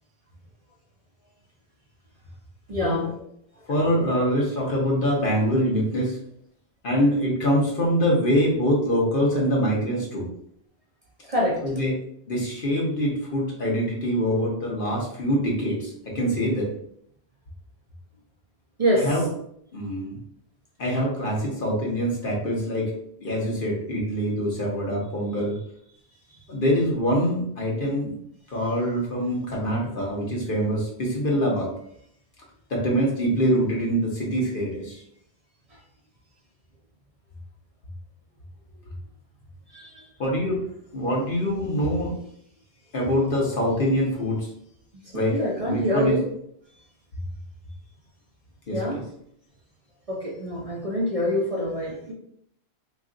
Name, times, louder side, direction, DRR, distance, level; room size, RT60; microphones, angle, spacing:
voice 1, 2.7-3.1 11.3-11.6 18.8-19.1 39.7-40.0 45.1-46.3 48.7-49.0 50.1-52.1, equal, 40° right, -3 dB, 0.6 m, -25 dB
voice 2, 3.7-6.2 6.8-10.3 11.6-11.9 12.3-16.7 18.9-19.3 19.7-20.1 20.8-22.9 23.2-25.6 26.5-28.1 28.5-31.7 32.7-35.0 40.2-40.6 40.9-42.1 42.9-44.5 45.1-45.4 45.6-46.2 48.7-49.0, equal, 50° left, -3 dB, 1.1 m, -24 dB
3.0 x 2.3 x 3.7 m, 0.70 s
omnidirectional pair, 1.1 m